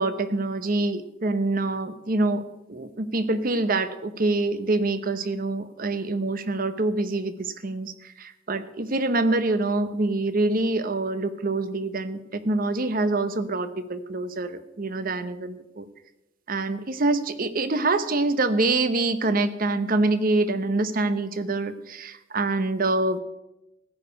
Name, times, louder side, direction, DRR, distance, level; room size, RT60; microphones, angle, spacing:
voice 1, 0.0-2.4 2.7-15.9 16.5-23.2, right 2 dB, 45° right, 11 dB, 0.8 m, -25 dB
15.0 x 5.2 x 8.3 m, 0.92 s
head